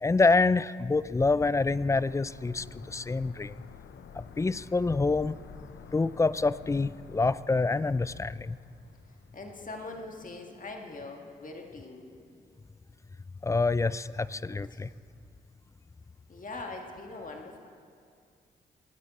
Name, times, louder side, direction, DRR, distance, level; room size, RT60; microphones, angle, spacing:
voice 1, 0.0-3.5 4.1-5.4 5.9-8.6 13.4-14.9, left 3 dB, 15° left, 18 dB, 0.3 m, -26 dB
sound 1, 1.7-10.4 10.7-10.8, left 7 dB, 75° left, 0.7 m, -51 dB
voice 2, 9.3-12.1 14.7-14.8 16.3-17.6, left 2 dB, 45° left, 2 dB, 1.8 m, -42 dB
21.5 x 9.5 x 4.2 m, 2.3 s
cardioid pair, 55°, 19 cm